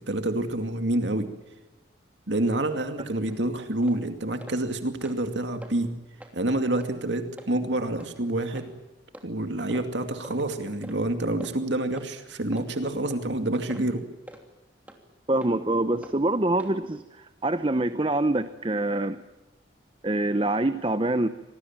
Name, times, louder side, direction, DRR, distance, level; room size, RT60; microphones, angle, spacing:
voice 1, 0.1-1.3 2.3-6.0 6.3-8.7 9.2-14.1, right 1 dB, 70° right, 6 dB, 2.4 m, -28 dB
sound 1, 3.3-3.4 3.8-4.0 4.4-4.6 4.9-5.3 5.6-5.7 6.2-6.4 6.8-6.9 7.4-7.5 8.0-8.1 8.5-8.7 9.1-9.3 9.7-9.9 10.2-10.4 10.8-11.0 11.4-11.5 11.9-12.1 12.5-12.7 13.1-13.2 13.7-13.9 14.3-14.4 14.9-15.0 15.4-15.5 16.0-16.2 16.6-16.7, equal, 10° right, 2.9 m, -45 dB
voice 2, 15.3-19.2 20.0-21.3, right 2 dB, 25° right, 11 dB, 0.8 m, -25 dB
26.5 x 19.5 x 8.9 m, 1.1 s
head